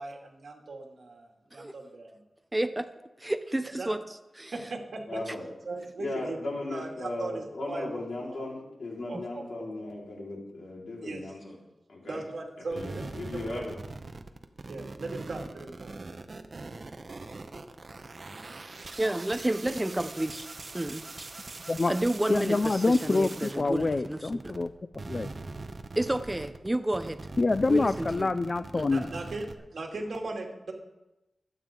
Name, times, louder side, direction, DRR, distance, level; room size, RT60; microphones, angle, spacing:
voice 1, 0.0-2.2 3.8-3.9 4.5-5.2 5.7-6.4 6.7-8.5 9.1-9.4 11.0-11.3 12.0-13.1 13.5-13.6 14.7-15.9 28.9-30.7, right 3 dB, 65° right, 0 dB, 2.6 m, -38 dB
voice 2, 2.5-2.9 3.2-4.0 4.4-4.5 5.3-5.4 9.1-9.2 19.0-20.5 20.7-21.3 21.9-24.5 26.0-27.2 27.7-28.3 28.7-28.9, right 1 dB, 15° right, 10 dB, 0.6 m, -30 dB
voice 3, 5.1-5.5 6.0-11.6 11.9-12.2 12.6-13.7, left 2 dB, 80° left, -3 dB, 4.4 m, -37 dB
sound 1, 12.7-24.7 24.9-29.5, right 3 dB, 40° right, 0.9 m, -42 dB
voice 4, 22.3-25.3 27.4-29.1, left 3 dB, 35° left, 12 dB, 0.4 m, -26 dB
24.5 x 9.1 x 3.8 m, 0.96 s
wide cardioid pair, 145°, 0 cm